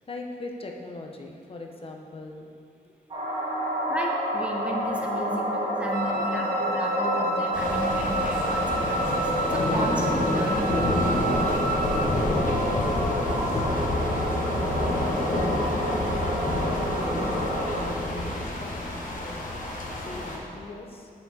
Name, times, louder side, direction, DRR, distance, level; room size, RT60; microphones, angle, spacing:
voice 1, 0.0-2.5 2.8-3.4 5.1-6.3 11.8-14.9 15.2-21.1, left 2 dB, 35° left, 2 dB, 0.7 m, -42 dB
sound 1, 3.1-17.9, equal, 40° right, 1.8 m, -28 dB
voice 2, 3.9-11.0, right 1 dB, 5° right, -1 dB, 0.6 m, -34 dB
Wind instrument woodwind instrument, 5.9-12.1, right 2 dB, 65° right, 0.5 m, -31 dB
sound 2, 7.5-20.4, left 1 dB, 55° left, 1.1 m, -29 dB
7.0 x 6.7 x 4.1 m, 2.5 s
wide cardioid pair, 160°, 16 cm